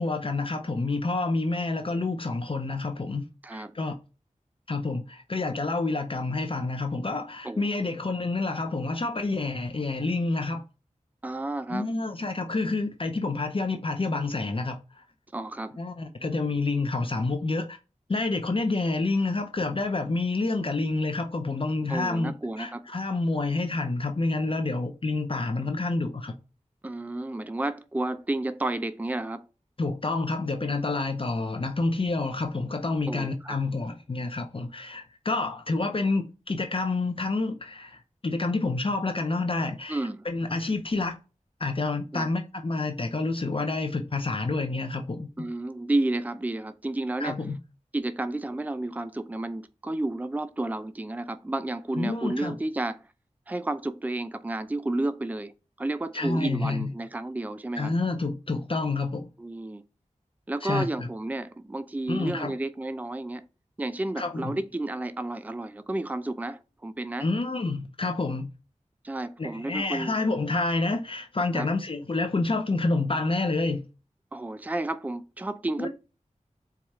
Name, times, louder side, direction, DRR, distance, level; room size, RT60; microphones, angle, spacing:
voice 1, 0.0-3.3 3.5-4.0 4.7-10.6 11.7-15.0 15.8-17.8 18.1-26.3 29.8-41.2 41.6-45.3 47.2-47.6 52.0-52.6 56.1-56.9 57.8-59.3 60.6-61.1 62.1-62.5 64.2-64.6 67.2-68.5 69.4-73.9 75.8-75.9, left 3 dB, 45° left, 0.6 m, -28 dB
voice 2, 11.2-11.9 15.3-15.8 21.9-22.8 26.8-29.4 33.1-33.6 39.9-40.2 42.1-42.3 45.4-47.4 47.9-53.0 53.5-55.5 55.8-57.9 59.4-59.8 60.5-63.4 63.8-67.3 69.0-70.1 71.5-71.7 74.3-75.9, right 2 dB, 10° right, 0.4 m, -31 dB
4.7 x 2.3 x 4.1 m
cardioid pair, 45°, 13 cm